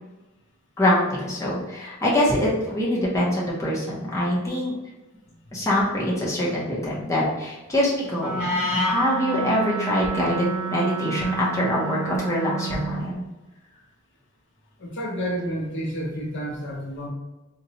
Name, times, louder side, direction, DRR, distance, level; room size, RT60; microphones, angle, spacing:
voice 1, 0.8-4.7 5.5-13.2, left 1 dB, 15° left, -6 dB, 0.7 m, -24 dB
Wind instrument woodwind instrument, 8.1-13.0, right 3 dB, 5° right, 1.2 m, -29 dB
voice 2, 14.8-17.1, equal, 60° left, -1 dB, 0.7 m, -30 dB
3.9 x 2.2 x 2.8 m, 1.1 s
head